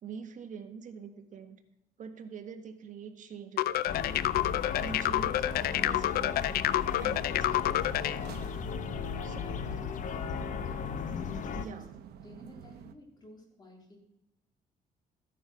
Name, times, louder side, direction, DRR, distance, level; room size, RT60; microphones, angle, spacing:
voice 1, 0.0-1.6 2.0-4.2 4.8-6.4 7.0-8.2 9.2-9.4 11.5-11.9, right 6 dB, 55° right, 5 dB, 1.7 m, -45 dB
sound 1, 3.6-8.2, left 13 dB, 70° left, 0.5 m, -28 dB
sound 2, 3.9-11.6, left 6 dB, 50° left, 1.0 m, -36 dB
sound 3, 6.2-12.9, right 9 dB, 80° right, 0.9 m, -49 dB
voice 2, 8.8-9.3 11.3-11.8 12.2-14.0, left 1 dB, 25° left, 1 dB, 3.4 m, -53 dB
13.5 x 9.3 x 5.7 m, 0.88 s
cardioid pair, 145°, 16 cm